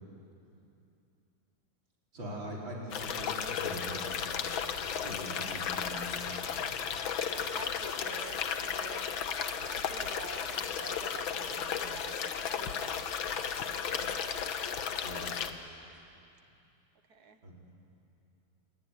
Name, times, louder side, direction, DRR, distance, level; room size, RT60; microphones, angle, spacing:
voice 1, 2.1-4.4 5.0-6.7 15.0-15.3 17.4-17.5, equal, 75° right, -3 dB, 5.5 m, -42 dB
sound 1, 2.9-15.5, left 7 dB, 80° left, 2.0 m, -34 dB
voice 2, 7.2-9.1 9.6-14.2 17.1-17.4, right 6 dB, 55° right, 8 dB, 1.8 m, -49 dB
27.0 x 22.5 x 9.8 m, 2.7 s
omnidirectional pair, 2.1 m